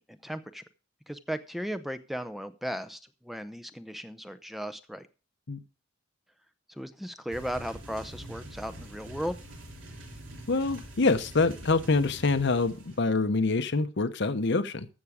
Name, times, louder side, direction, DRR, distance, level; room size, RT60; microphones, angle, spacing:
voice 1, 0.1-0.6 1.1-5.1 6.7-9.4, equal, ahead, 11 dB, 0.6 m, -36 dB
sound 1, 7.3-13.0, right 1 dB, 75° right, 3.3 m, -45 dB
voice 2, 10.5-14.9, left 3 dB, 60° left, 11 dB, 0.9 m, -26 dB
14.0 x 7.2 x 4.9 m, 0.33 s
head